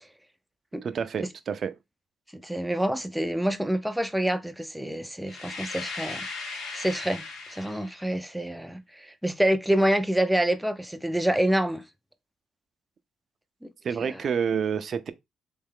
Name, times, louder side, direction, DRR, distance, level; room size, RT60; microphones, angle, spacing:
voice 1, 0.8-1.7 13.8-15.1, right 7 dB, 50° right, 0.5 m, -28 dB
voice 2, 2.3-6.3 6.7-11.8 13.6-13.7 14.0-14.1, right 1 dB, 5° right, 0.5 m, -27 dB
sound 1, 5.3-8.0, left 3 dB, 85° left, 1.3 m, -37 dB
3.5 x 3.3 x 3.7 m
cardioid pair, 90°, 0 cm